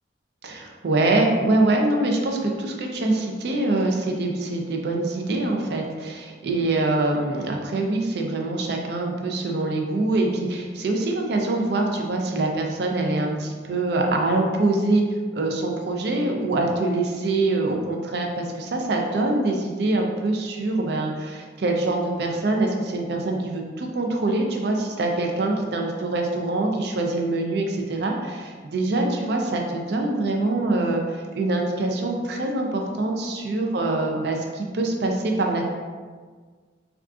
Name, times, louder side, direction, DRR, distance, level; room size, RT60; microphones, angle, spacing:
voice 1, 0.4-15.0 15.3-35.6, right 2 dB, 60° right, 2 dB, 0.4 m, -24 dB
3.7 x 2.4 x 2.3 m, 1.5 s
head